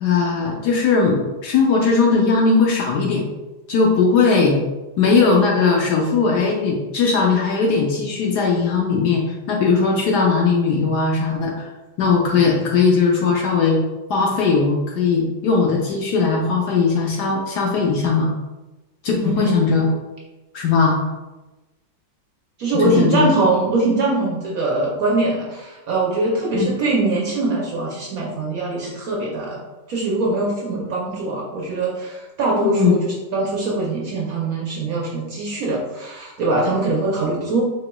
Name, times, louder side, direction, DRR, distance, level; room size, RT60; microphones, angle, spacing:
voice 1, 0.0-3.3 3.7-4.6 5.0-11.7 12.0-13.8 14.1-18.3 19.0-19.9 20.5-21.0 22.7-23.3 26.5-26.7 32.7-33.0, left 4 dB, 70° left, 0 dB, 1.0 m, -18 dB
voice 2, 19.1-19.7 22.6-29.6 29.9-37.6, right 2 dB, 65° right, -3 dB, 0.9 m, -22 dB
4.3 x 4.1 x 2.2 m, 1.1 s
omnidirectional pair, 2.1 m